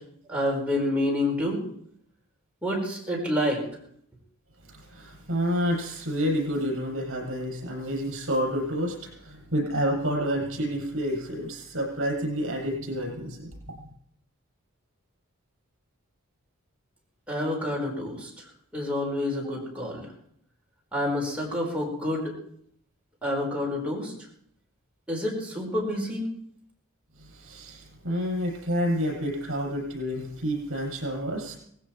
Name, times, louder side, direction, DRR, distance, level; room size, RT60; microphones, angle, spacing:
voice 1, 0.3-1.6 2.6-3.6 17.3-18.3 18.7-20.1 20.9-22.3 23.2-24.1 25.1-26.3, left 1 dB, 5° right, -3 dB, 4.9 m, -28 dB
voice 2, 4.9-9.0 9.2-13.5 27.4-31.5, equal, 65° right, 0 dB, 7.4 m, -29 dB
19.0 x 17.0 x 4.6 m, 0.68 s
head